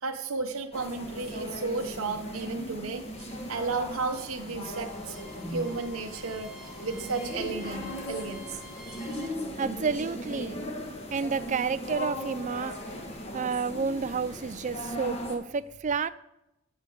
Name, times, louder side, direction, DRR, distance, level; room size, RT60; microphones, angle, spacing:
voice 1, 0.0-5.2 5.5-9.3, right 4 dB, 75° right, 4 dB, 0.8 m, -34 dB
sound 1, 0.7-15.4, left 1 dB, 30° left, 1.3 m, -38 dB
Bowed string instrument, 4.4-9.4, left 1 dB, ahead, 1.2 m, -51 dB
voice 2, 9.6-10.6 11.1-12.8 13.3-16.1, right 5 dB, 35° right, 15 dB, 0.4 m, -30 dB
13.5 x 8.1 x 3.9 m, 0.89 s
head